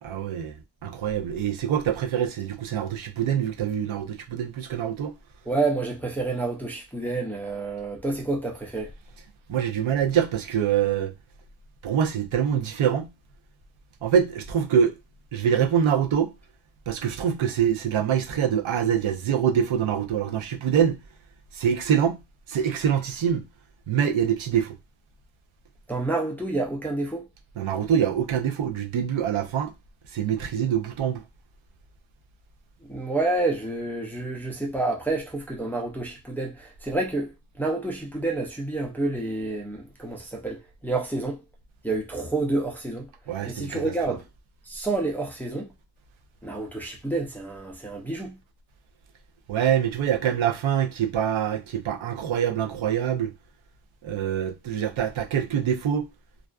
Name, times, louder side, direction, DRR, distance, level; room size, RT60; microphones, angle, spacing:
voice 1, 0.0-0.6 0.8-5.1 9.5-11.1 11.8-13.1 14.0-14.9 15.3-16.3 16.9-21.0 21.5-22.2 22.5-23.4 23.9-24.7 27.6-29.7 30.1-31.2 43.3-44.2 49.5-53.3 54.0-56.1, right 8 dB, 80° right, 0.6 m, -25 dB
voice 2, 5.5-8.9 25.9-27.3 32.9-41.4 41.8-43.1 43.5-44.2 44.7-45.7 46.4-48.4, right 2 dB, 5° left, 0.4 m, -29 dB
2.4 x 2.3 x 2.2 m
wide cardioid pair, 155°, 48 cm